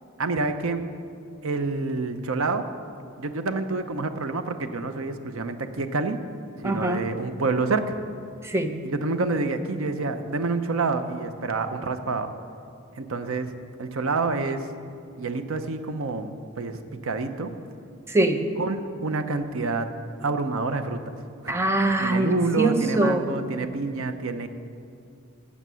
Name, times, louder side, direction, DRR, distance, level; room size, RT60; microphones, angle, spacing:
voice 1, 0.2-0.8 1.4-2.6 3.2-6.2 6.6-7.9 8.8-12.3 13.0-13.5 13.8-14.7 15.2-17.5 18.6-19.9 20.2-21.0 21.4-21.5 22.0-24.5, right 3 dB, 80° right, 9 dB, 0.7 m, -28 dB
voice 2, 6.6-7.0 8.4-8.8 18.1-18.5 21.5-23.2, right 2 dB, 10° right, 7 dB, 0.6 m, -23 dB
12.5 x 7.4 x 6.2 m, 2.5 s
head